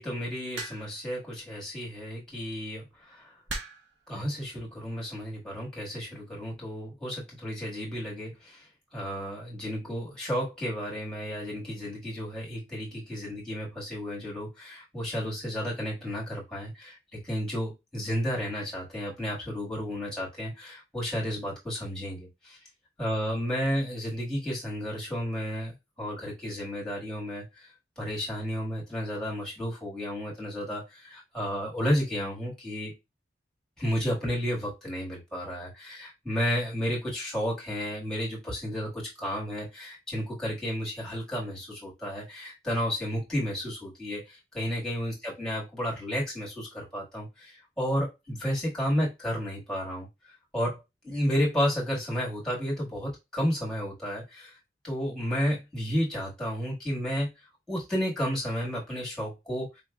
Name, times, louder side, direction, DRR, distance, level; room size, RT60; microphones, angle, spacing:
voice 1, 0.0-3.3 4.1-8.7 8.9-22.6 23.0-27.7 28.0-32.9 33.8-50.1 50.5-54.5 54.8-57.3 57.7-59.7, equal, 5° left, -4 dB, 1.7 m, -32 dB
sound 1, 0.6-1.1 2.3-2.5 3.5-4.0 4.9-5.2, right 2 dB, 85° right, 0.9 m, -38 dB
4.1 x 3.1 x 2.3 m, 0.22 s
head